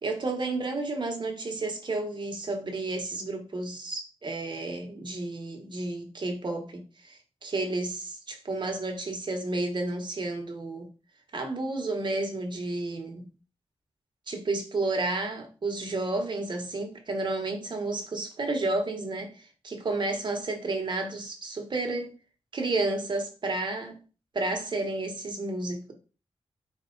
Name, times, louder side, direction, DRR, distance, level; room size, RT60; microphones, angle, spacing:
voice 1, 0.0-10.9 11.3-13.2 14.3-22.1 22.5-24.0 24.3-25.9, right 2 dB, 45° right, 1.1 m, -31 dB
4.5 x 2.9 x 3.8 m
wide cardioid pair, 130°, 11 cm